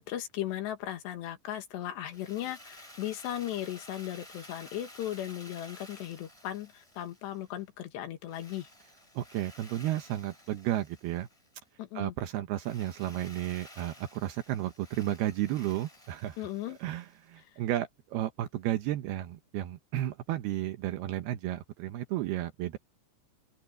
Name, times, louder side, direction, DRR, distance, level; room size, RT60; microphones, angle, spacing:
voice 1, 0.0-8.7 11.8-12.2 16.4-16.8 17.4-17.6, left 12 dB, 85° left, 3.8 m, -37 dB
Drill, 2.1-7.6 8.3-11.6 12.5-17.3, left 1 dB, 10° left, 4.8 m, -53 dB
voice 2, 9.2-11.3 12.0-16.4 16.8-22.8, right 13 dB, 75° right, 2.8 m, -33 dB
open air
omnidirectional pair, 4.9 m